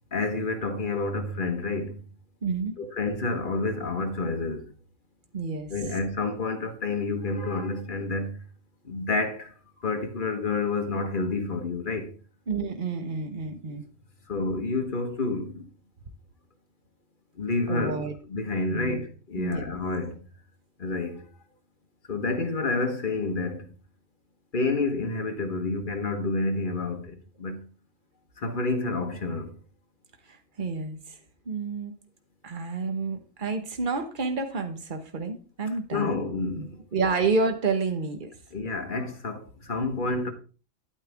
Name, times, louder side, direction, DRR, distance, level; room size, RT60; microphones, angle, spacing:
voice 1, 0.1-2.0 2.8-4.7 5.7-8.4 8.8-9.5 9.8-12.1 14.3-15.7 17.3-20.2 20.8-21.2 22.1-23.6 24.5-27.6 28.4-29.6 35.9-36.8 38.5-40.3, left 3 dB, 40° left, 1.3 m, -29 dB
voice 2, 2.4-2.7 5.3-5.7 12.5-13.8 17.7-18.1 18.7-19.0 19.4-19.6 30.3-31.2 31.5-31.9 32.4-36.1 36.6-38.3, right 4 dB, 40° right, 1.3 m, -29 dB
9.9 x 8.8 x 3.5 m
omnidirectional pair, 1.5 m